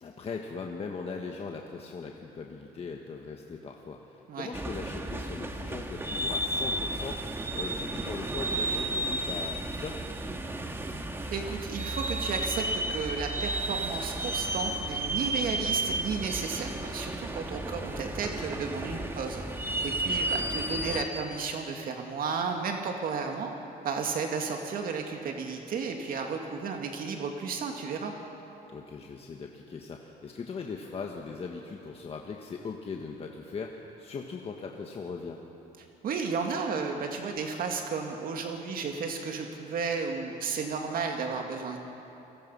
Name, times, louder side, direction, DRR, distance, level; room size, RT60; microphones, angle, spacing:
voice 1, 0.0-10.0 18.8-19.1 20.3-20.5 20.8-21.0 28.7-35.4, left 5 dB, 35° left, 1 dB, 1.5 m, -40 dB
sound 1, 4.5-21.0, right 1 dB, 15° right, 1.6 m, -33 dB
voice 2, 11.3-19.4 19.8-23.5 23.8-28.1 36.0-41.8, right 5 dB, 60° right, 3 dB, 2.1 m, -33 dB
29.0 x 18.5 x 5.6 m, 2.9 s
cardioid pair, 110°, 17 cm